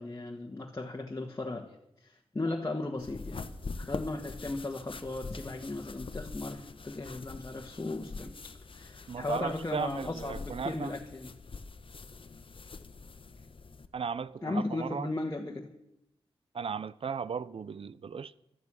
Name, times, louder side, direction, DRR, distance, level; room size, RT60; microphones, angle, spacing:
voice 1, 0.0-1.8 2.0-3.5 3.8-11.3 14.4-15.7, left 2 dB, 30° left, 1.5 m, -36 dB
sound 1, 3.0-13.9, left 4 dB, 55° left, 1.1 m, -44 dB
voice 2, 9.1-10.9 13.9-15.1 16.5-18.4, right 6 dB, 65° right, 0.6 m, -36 dB
14.5 x 12.5 x 6.3 m
cardioid pair, 60°, 10 cm